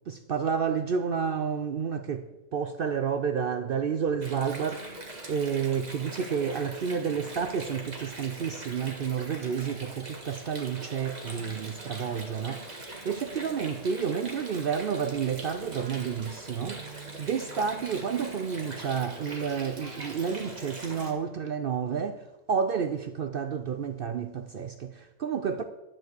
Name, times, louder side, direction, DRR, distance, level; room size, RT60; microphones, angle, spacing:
voice 1, 0.1-2.2 2.5-22.2 22.5-25.6, right 7 dB, 60° right, 0.6 m, -30 dB
Water, 4.2-21.1, right 2 dB, 30° right, 1.6 m, -42 dB
11.0 x 4.5 x 7.8 m
omnidirectional pair, 1.4 m